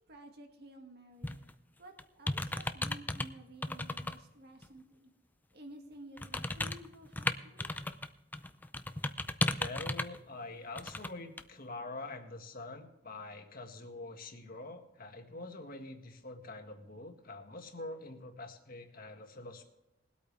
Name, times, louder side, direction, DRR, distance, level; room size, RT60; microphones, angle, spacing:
voice 1, 0.1-1.4 1.8-5.1 5.5-7.7, right 1 dB, 60° right, 3 dB, 2.0 m, -53 dB
sound 1, 1.2-1.5 2.0-3.3 3.6-4.1 4.6-4.7 6.2-8.1 8.3-10.2 10.8-11.1 11.4-11.5, left 2 dB, 10° left, 0.5 m, -35 dB
voice 2, 9.4-19.6, left 2 dB, 50° left, 4 dB, 1.7 m, -45 dB
21.5 x 8.5 x 3.3 m, 0.92 s
head